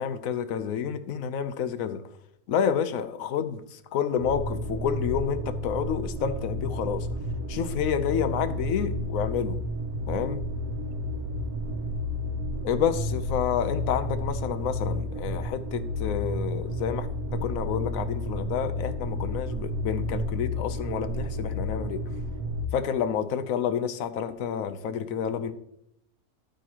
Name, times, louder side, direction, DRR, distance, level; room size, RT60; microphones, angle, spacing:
voice 1, 0.0-2.0 2.5-7.1 7.5-9.6 10.1-10.4 12.6-22.0 22.7-25.5, left 8 dB, 70° left, 11 dB, 1.1 m, -29 dB
sound 1, 4.2-22.7, left 1 dB, 80° right, 1.2 m, -31 dB
11.5 x 9.0 x 2.9 m, 0.77 s
omnidirectional pair, 1.5 m